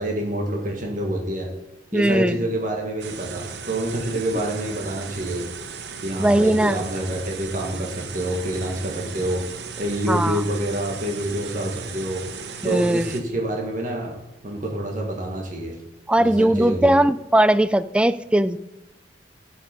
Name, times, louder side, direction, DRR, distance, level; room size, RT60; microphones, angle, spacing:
voice 1, 0.0-1.5 1.9-5.4 6.0-9.4 9.8-12.2 12.6-14.1 14.4-15.8 16.2-16.9, right 1 dB, 50° right, 1 dB, 1.5 m, -27 dB
voice 2, 1.9-2.4 6.2-6.8 10.1-10.4 12.6-13.1 16.1-18.6, right 1 dB, 5° right, 14 dB, 0.3 m, -19 dB
sound 1, 3.0-13.2, right 5 dB, 70° right, 0.9 m, -36 dB
13.5 x 5.5 x 5.2 m, 0.92 s
head